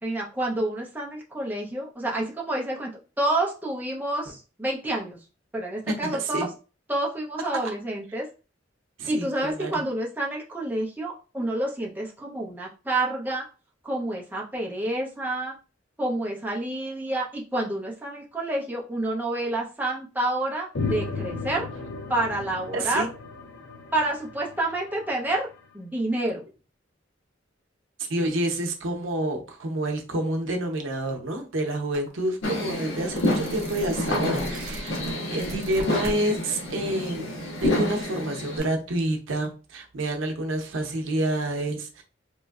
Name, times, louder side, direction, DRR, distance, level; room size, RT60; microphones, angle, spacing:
voice 1, 0.0-2.9 3.2-5.2 5.5-6.5 6.9-8.3 9.1-13.4 13.8-15.5 16.0-21.7 22.1-23.1 23.9-25.5 25.7-26.4, right 1 dB, 10° right, 0.6 m, -28 dB
voice 2, 5.9-6.5 9.0-9.7 22.7-23.1 28.1-35.0 35.3-37.3 37.6-42.0, right 1 dB, 80° right, 0.7 m, -28 dB
sound 1, 20.7-25.4, left 3 dB, 65° left, 0.6 m, -34 dB
sound 2, 31.9-32.1 32.5-36.2 36.6-38.6, right 1 dB, 55° right, 0.8 m, -39 dB
sound 3, 32.4-38.6, left 1 dB, 85° left, 1.1 m, -29 dB
3.0 x 2.6 x 2.3 m
head